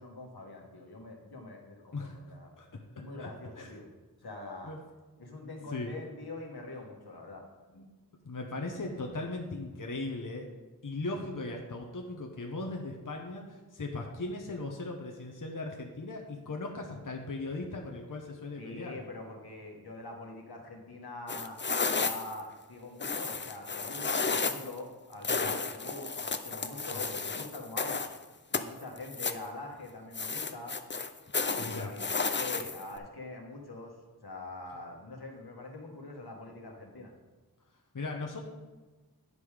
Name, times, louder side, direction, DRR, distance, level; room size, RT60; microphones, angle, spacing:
voice 1, 0.0-2.5 2.9-3.9 4.2-4.7 5.2-7.4 18.6-21.6 22.0-28.0 28.5-30.8 31.4-32.0 32.4-33.9 34.2-37.1, left 2 dB, 90° left, 0 dB, 1.5 m, -44 dB
voice 2, 8.2-10.5 10.8-19.0 25.3-25.5 26.9-27.0 31.6-31.9 37.9-38.5, left 2 dB, 55° left, 1 dB, 1.0 m, -38 dB
sound 1, 21.3-22.4 23.0-24.7 25.2-28.2 28.5-29.5 30.1-33.0, left 4 dB, 30° left, 0.5 m, -32 dB
9.8 x 5.4 x 4.9 m, 1.2 s
wide cardioid pair, 55°, 37 cm